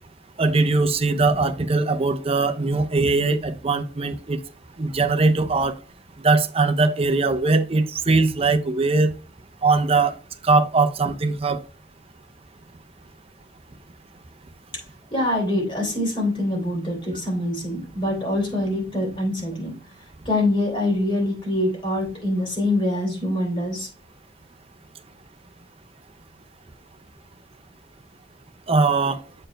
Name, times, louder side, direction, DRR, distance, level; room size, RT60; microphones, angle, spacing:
voice 1, 0.4-4.4 4.8-5.8 6.2-9.1 9.6-10.1 10.4-11.6 28.7-29.2, right 3 dB, 35° right, 0.6 m, -20 dB
voice 2, 15.1-19.8 20.2-23.9, left 1 dB, 30° left, 3.1 m, -24 dB
7.7 x 4.5 x 3.3 m
head